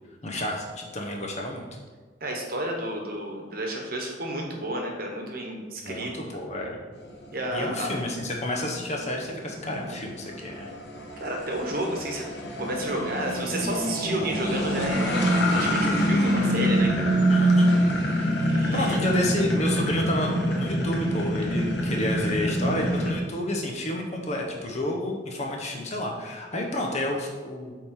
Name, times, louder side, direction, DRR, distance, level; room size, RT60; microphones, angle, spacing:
voice 1, 0.2-1.7 5.8-6.8 7.5-10.8 17.3-17.8 18.7-27.7, left 1 dB, 40° left, 0 dB, 1.0 m, -30 dB
voice 2, 2.2-6.4 7.3-7.9 11.2-12.3 12.6-16.9 17.3-17.4 18.5-19.0, right 1 dB, 55° right, 1 dB, 1.2 m, -31 dB
sound 1, 7.0-23.2, equal, 65° left, 1.2 m, -25 dB
7.6 x 3.8 x 4.5 m, 1.4 s
head